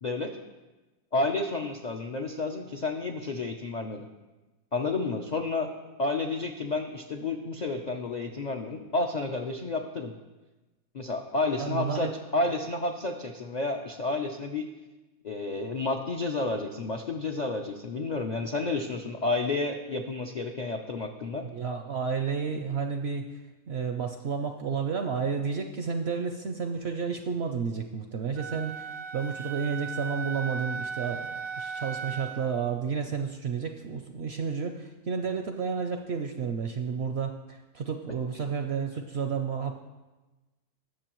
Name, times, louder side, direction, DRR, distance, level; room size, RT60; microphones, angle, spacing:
voice 1, 0.0-0.4 1.1-4.1 4.7-5.7 6.0-10.1 10.9-14.7 15.2-21.4, left 3 dB, 65° left, 2 dB, 0.4 m, -30 dB
voice 2, 11.6-12.1 21.4-23.3 23.7-39.7, right 6 dB, 65° right, 5 dB, 0.6 m, -31 dB
Wind instrument woodwind instrument, 28.4-32.5, right 5 dB, 85° right, 1.2 m, -36 dB
19.0 x 6.9 x 3.0 m, 1.1 s
omnidirectional pair, 1.6 m